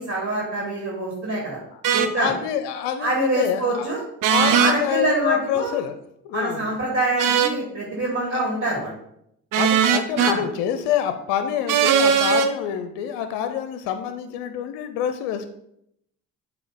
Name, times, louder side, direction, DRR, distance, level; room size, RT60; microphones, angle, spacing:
voice 1, 0.0-1.6 1.9-2.3 3.0-4.0 4.4-5.7 6.3-8.9 10.2-10.4, right 2 dB, 30° right, -2 dB, 2.3 m, -25 dB
sound 1, 1.8-2.1 4.2-4.8 7.2-7.6 9.5-10.4 11.7-12.5, right 7 dB, 45° right, 0.7 m, -19 dB
voice 2, 2.2-3.9 4.3-6.0 6.2-6.7 8.3-8.4 9.5-15.5, left 9 dB, 70° left, 9 dB, 0.6 m, -26 dB
7.8 x 2.9 x 5.0 m, 0.75 s
hypercardioid pair, 45°, 45 cm